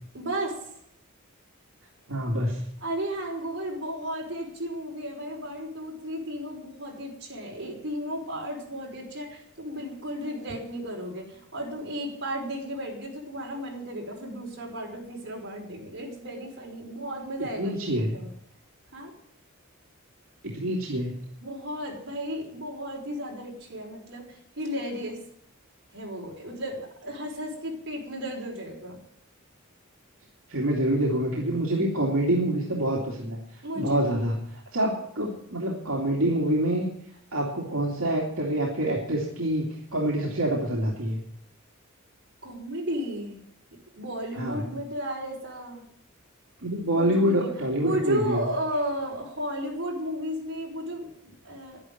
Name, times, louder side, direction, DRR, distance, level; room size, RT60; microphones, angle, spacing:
voice 1, 0.1-0.6 2.8-18.3 18.9-19.1 21.4-25.2 25.9-29.0 33.6-34.4 42.4-43.4 44.0-45.8 46.9-47.5 47.8-51.8, equal, 55° right, -1 dB, 5.4 m, -34 dB
voice 2, 2.1-2.6 17.6-18.1 20.4-21.2 30.5-33.4 33.7-34.3 34.7-36.9 37.3-41.2 44.4-44.6 46.6-48.5, right 1 dB, 75° right, -3 dB, 2.8 m, -26 dB
11.5 x 11.0 x 9.4 m, 0.71 s
head